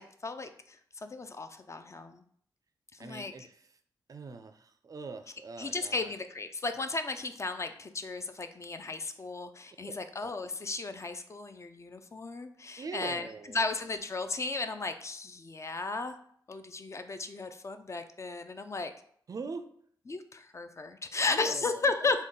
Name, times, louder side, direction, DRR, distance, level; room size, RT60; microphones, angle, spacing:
voice 1, 0.0-2.2 3.0-3.3 5.6-13.3 13.5-16.2 16.5-18.9 20.1-22.2, left 3 dB, 35° left, 8 dB, 0.4 m, -35 dB
voice 2, 3.0-3.7 4.1-6.1 9.8-9.9 10.2-10.3 12.8-13.7 19.3-19.7 21.3-22.2, right 4 dB, 45° right, 9 dB, 0.4 m, -43 dB
3.8 x 2.1 x 3.7 m, 0.62 s
cardioid pair, 55°, 8 cm